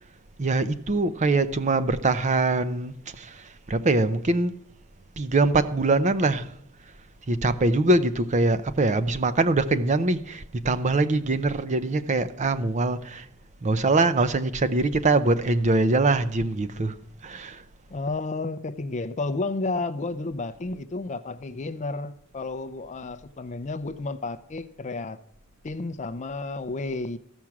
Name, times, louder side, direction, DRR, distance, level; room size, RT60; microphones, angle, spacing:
voice 1, 0.4-3.3 3.7-4.5 5.2-6.5 7.3-13.2 13.6-16.9 17.2-17.6, right 2 dB, 30° right, 0.6 m, -23 dB
voice 2, 17.9-25.2 25.6-27.2, left 3 dB, 30° left, 0.5 m, -31 dB
15.0 x 6.1 x 5.9 m
head